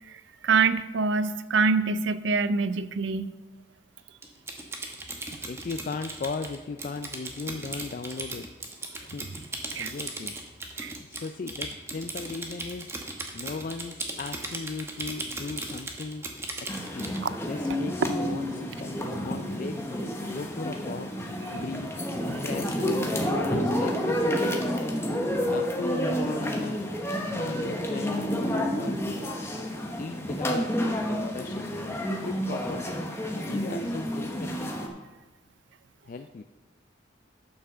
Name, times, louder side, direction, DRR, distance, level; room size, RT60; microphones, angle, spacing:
voice 1, 0.4-3.3 9.8-9.9 10.8-11.0 17.2-17.3, right 4 dB, 80° right, 13 dB, 0.5 m, -25 dB
Typing, 4.2-17.2, right 2 dB, 15° right, 1.0 m, -37 dB
voice 2, 5.4-8.5 9.0-9.3 9.6-10.4 11.1-12.9 13.3-16.2 16.7-19.9 20.3-21.1 21.5-22.0 22.4-23.1 23.5-24.5 25.5-26.8 27.4-29.0 30.0-30.7 31.1-33.0 33.4-34.7 36.1-36.4, left 4 dB, 45° left, 7 dB, 0.3 m, -37 dB
sound 1, 16.7-34.9, equal, 15° left, 0.9 m, -29 dB
9.6 x 5.8 x 6.7 m, 1.2 s
head